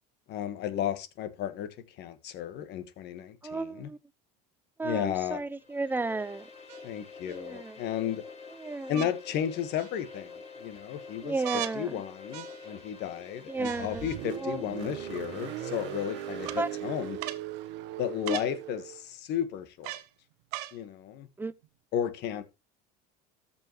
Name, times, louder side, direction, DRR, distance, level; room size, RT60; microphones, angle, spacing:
voice 1, 0.3-3.9 4.8-5.4 6.8-8.2 8.9-10.3 10.6-11.4 11.7-17.2 18.0-20.0 20.7-21.3 21.9-22.4, left 9 dB, 60° left, 1.5 m, -33 dB
voice 2, 3.4-4.0 4.8-6.5 7.3-7.8 8.6-9.1 11.2-12.0 13.5-14.1 14.4-14.6 16.6-16.7 18.3-18.4 21.4-21.5, right 3 dB, 10° right, 0.6 m, -33 dB
sound 1, 4.9-5.0 6.7-7.4 8.9-9.1 9.8-10.3 11.4-11.8 12.3-12.9 13.6-14.2 15.1-15.2 16.4-16.6 17.2-17.5 18.2-18.5 19.8-20.1 20.5-20.8 21.6-21.7, right 15 dB, 85° right, 0.8 m, -39 dB
sound 2, 5.5-17.2, left 5 dB, 30° left, 2.6 m, -48 dB
Car, 13.6-19.0, right 13 dB, 60° right, 1.1 m, -39 dB
13.5 x 5.6 x 3.1 m
supercardioid pair, 100°, 20 cm